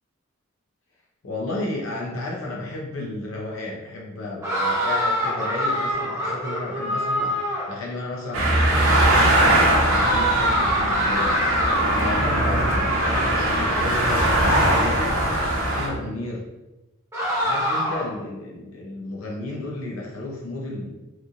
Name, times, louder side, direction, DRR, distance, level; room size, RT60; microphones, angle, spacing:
voice 1, 1.2-11.4 11.9-15.2 15.6-16.5 17.4-20.9, left 2 dB, 85° left, -3 dB, 0.6 m, -33 dB
sound 1, 4.4-7.8 9.8-15.1 17.1-18.2, equal, 15° right, 0.6 m, -25 dB
sound 2, 8.3-15.9, right 1 dB, 90° right, 0.8 m, -21 dB
2.9 x 2.5 x 2.4 m, 1.0 s
head